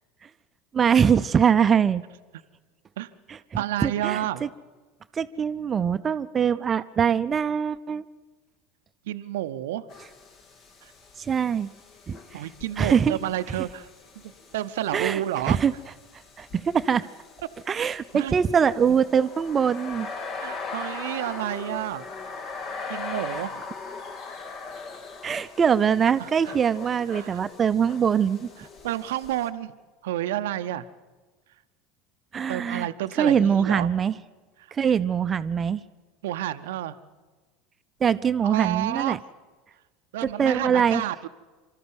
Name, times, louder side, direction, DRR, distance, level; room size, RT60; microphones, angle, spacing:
voice 1, 0.7-2.0 3.3-3.4 3.8-4.5 5.1-8.0 11.2-11.7 12.1-12.4 12.8-13.2 14.9-15.2 15.5-15.7 16.4-17.1 17.7-20.1 25.2-28.5 32.3-32.9 33.2-34.1 34.7-35.8 38.0-39.2 40.2-41.0, right 7 dB, 30° right, 13 dB, 0.6 m, -23 dB
voice 2, 3.6-4.4 9.1-9.9 10.8-10.9 12.3-13.9 14.2-15.6 18.1-18.3 20.4-22.0 22.9-23.6 26.2-26.5 27.1-27.4 28.8-29.8 30.0-30.8 32.5-33.9 36.2-36.9 38.4-39.2 40.1-41.3, right 13 dB, 75° right, 12 dB, 0.7 m, -30 dB
sound 1, 9.9-29.5, left 4 dB, 50° left, 2.2 m, -40 dB
25.5 x 13.0 x 8.0 m, 1.3 s
hypercardioid pair, 80°, 0 cm